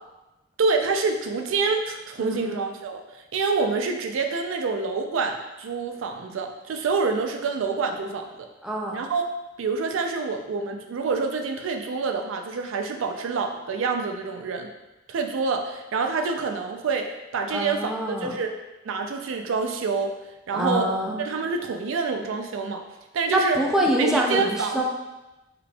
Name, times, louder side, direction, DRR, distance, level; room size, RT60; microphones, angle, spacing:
voice 1, 0.6-3.0 3.3-8.4 8.9-9.2 9.6-14.7 15.1-17.9 18.2-18.5 18.8-20.1 20.5-20.9 21.2-22.8 23.1-23.6 24.0-24.8, right 4 dB, 85° right, 4 dB, 0.4 m, -27 dB
voice 2, 2.2-2.7 8.6-9.0 17.5-18.4 20.5-21.2 23.3-24.8, right 1 dB, 5° right, -2 dB, 0.4 m, -25 dB
3.8 x 3.3 x 2.3 m, 1.0 s
head